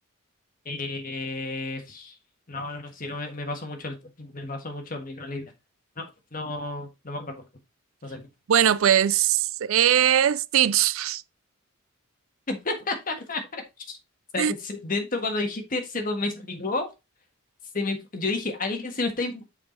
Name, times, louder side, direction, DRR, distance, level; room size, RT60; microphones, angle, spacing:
voice 1, 0.7-2.1 2.5-5.5 6.0-6.1 6.3-7.4 8.0-8.3 12.5-13.6 13.9-14.0 14.3-16.9 17.7-19.6, left 3 dB, 40° left, 1.6 m, -31 dB
voice 2, 8.5-11.2 14.4-14.5, right 10 dB, 75° right, 0.4 m, -21 dB
6.6 x 4.9 x 3.9 m
head